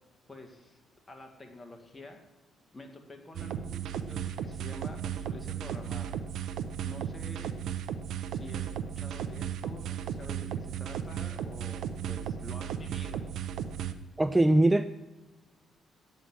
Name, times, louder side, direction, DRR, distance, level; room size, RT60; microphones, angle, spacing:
voice 1, 0.3-0.8 1.1-2.2 2.7-6.2 6.8-7.6 8.3-13.2, left 2 dB, 20° left, 3 dB, 2.0 m, -48 dB
sound 1, 3.4-13.9, right 9 dB, 75° right, 0.7 m, -35 dB
voice 2, 14.2-14.9, right 1 dB, 15° right, 12 dB, 0.4 m, -21 dB
9.1 x 8.4 x 6.3 m, 1.1 s
cardioid pair, 90°, 0 cm